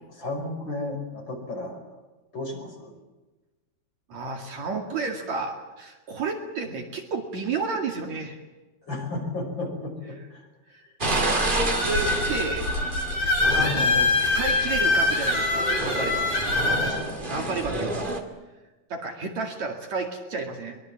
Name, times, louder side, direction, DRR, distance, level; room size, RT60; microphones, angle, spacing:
voice 1, 0.1-1.8 2.3-2.9 8.8-10.5 10.8-10.9 16.7-17.3, left 2 dB, 30° left, 2 dB, 5.8 m, -34 dB
voice 2, 4.1-8.4 10.7-12.7 13.5-16.3 17.3-18.1 18.9-20.8, right 4 dB, 55° right, 3 dB, 3.3 m, -31 dB
sound 1, 11.0-18.2, right 1 dB, 15° right, 1.9 m, -30 dB
sound 2, 11.4-16.9, left 3 dB, 80° left, 8.0 m, -24 dB
23.0 x 23.0 x 7.4 m, 1.2 s
omnidirectional pair, 4.0 m